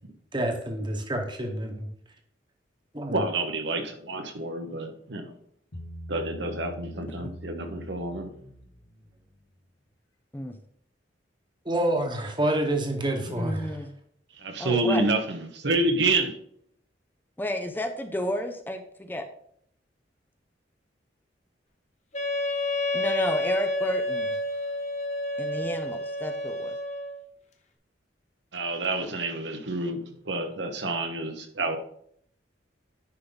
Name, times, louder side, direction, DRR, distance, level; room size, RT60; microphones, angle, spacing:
voice 1, 0.3-1.9 2.9-3.2 11.6-13.7, right 1 dB, 25° right, 4 dB, 1.3 m, -28 dB
voice 2, 3.1-5.3 6.1-8.3 14.4-16.4 28.5-31.8, right 2 dB, 70° right, 5 dB, 1.2 m, -28 dB
Bass guitar, 5.7-9.1, equal, 60° left, 2.4 m, -42 dB
voice 3, 13.2-13.9 14.6-15.0 17.4-19.3 22.9-24.4 25.4-26.8, left 1 dB, 10° left, 6 dB, 0.6 m, -32 dB
Wind instrument woodwind instrument, 22.1-27.2, left 1 dB, 40° left, 1.0 m, -29 dB
10.0 x 5.5 x 4.0 m, 0.67 s
head